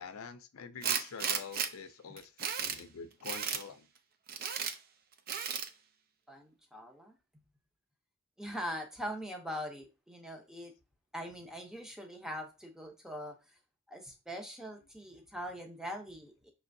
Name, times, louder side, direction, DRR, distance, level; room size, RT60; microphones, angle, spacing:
voice 1, 0.0-3.9, left 5 dB, 80° left, 0.5 m, -46 dB
Tools, 0.8-1.7 2.2-2.8 3.2-3.6 4.3-4.7 5.3-5.7, right 7 dB, 45° right, 0.4 m, -34 dB
voice 2, 6.3-7.2 8.4-10.7 11.1-13.6 13.9-16.5, equal, ahead, 0.6 m, -42 dB
5.4 x 3.3 x 2.6 m
head